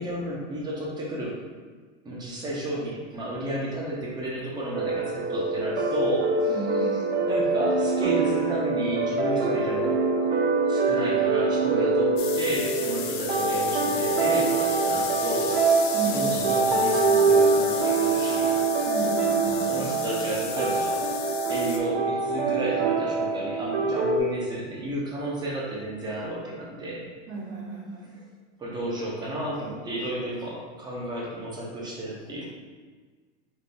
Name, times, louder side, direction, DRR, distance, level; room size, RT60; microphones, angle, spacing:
voice 1, 0.0-1.4 2.0-6.9 7.2-9.9 10.7-15.6 16.0-18.6 19.5-21.0 21.5-27.1 28.6-32.5, right 1 dB, 10° right, -4 dB, 0.6 m, -32 dB
sound 1, 4.7-24.2, right 3 dB, 65° right, 0.7 m, -24 dB
voice 2, 6.5-7.1 15.9-16.5 18.8-19.9 27.3-28.1, right 3 dB, 85° right, -3 dB, 1.2 m, -34 dB
sound 2, 12.2-21.8, left 7 dB, 55° left, 0.6 m, -35 dB
4.1 x 2.6 x 3.4 m, 1.5 s
supercardioid pair, 145°, 37 cm